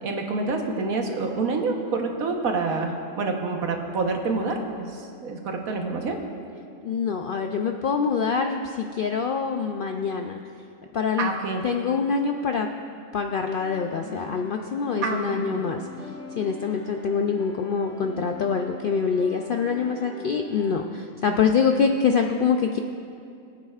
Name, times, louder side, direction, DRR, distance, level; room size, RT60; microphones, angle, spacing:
voice 1, 0.0-6.2 11.2-11.6 15.0-15.6 21.3-21.4, right 3 dB, 90° right, 2 dB, 1.5 m, -27 dB
voice 2, 6.8-10.4 10.9-11.4 11.6-12.7 13.1-15.8 16.4-22.8, left 6 dB, 75° left, 4 dB, 0.5 m, -25 dB
sound 1, 13.6-20.7, left 2 dB, 10° left, 3.1 m, -41 dB
22.0 x 8.9 x 2.4 m, 2.4 s
omnidirectional pair, 1.5 m